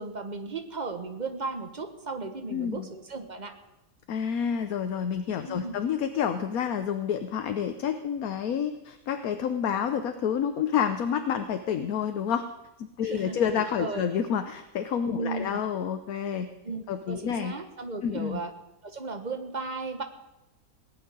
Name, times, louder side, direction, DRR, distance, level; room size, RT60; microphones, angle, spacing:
voice 1, 0.0-3.5 5.5-5.7 13.0-14.0 15.1-15.5 16.6-18.5 18.8-20.0, right 4 dB, 30° right, 7 dB, 1.4 m, -35 dB
voice 2, 2.5-2.9 4.1-12.4 12.8-16.5 16.9-17.5 18.0-18.4, left 8 dB, 70° left, 8 dB, 1.2 m, -29 dB
18.5 x 6.7 x 9.6 m, 0.94 s
omnidirectional pair, 1.6 m